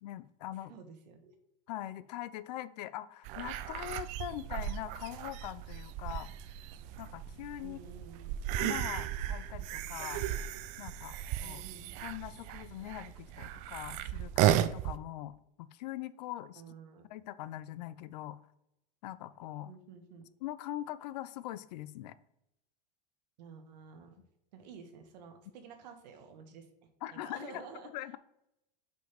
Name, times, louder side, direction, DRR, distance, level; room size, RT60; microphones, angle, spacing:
voice 1, 0.0-0.7 1.7-6.3 7.0-7.8 8.6-10.2 10.8-11.6 12.0-16.6 17.1-18.4 19.0-19.7 20.4-22.1 27.0-27.6 27.9-28.2, left 14 dB, 75° left, 16 dB, 0.6 m, -42 dB
voice 2, 0.6-1.3 7.6-8.5 11.4-12.1 16.5-17.1 19.6-20.2 23.4-24.2 24.5-26.7 27.1-27.9, right 5 dB, 85° right, 6 dB, 1.5 m, -51 dB
sound 1, 3.3-15.0, right 12 dB, 35° right, 0.4 m, -35 dB
5.2 x 5.2 x 5.8 m, 0.84 s
supercardioid pair, 165°, 21 cm